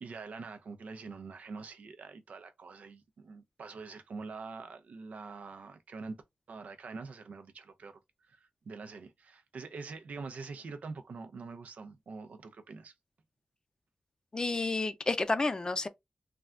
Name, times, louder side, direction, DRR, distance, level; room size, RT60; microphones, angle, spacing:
voice 1, 0.0-6.2 6.5-8.0 8.3-12.9, right 4 dB, 80° right, 0.5 m, -45 dB
voice 2, 14.3-15.9, left 3 dB, 30° left, 0.4 m, -30 dB
3.3 x 2.3 x 2.4 m
wide cardioid pair, 105°, 2 cm